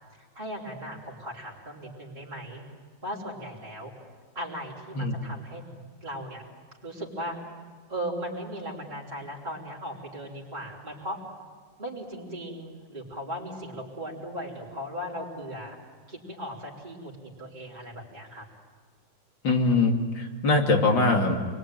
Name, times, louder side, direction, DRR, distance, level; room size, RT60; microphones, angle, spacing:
voice 1, 0.1-2.6 3.0-3.9 4.3-5.6 6.0-6.4 6.8-7.4 7.9-11.2 11.8-15.8 16.1-18.4, equal, 20° right, -5 dB, 4.2 m, -37 dB
voice 2, 19.4-21.4, left 3 dB, 70° left, 2 dB, 3.3 m, -22 dB
28.5 x 21.5 x 9.2 m, 1.5 s
omnidirectional pair, 2.1 m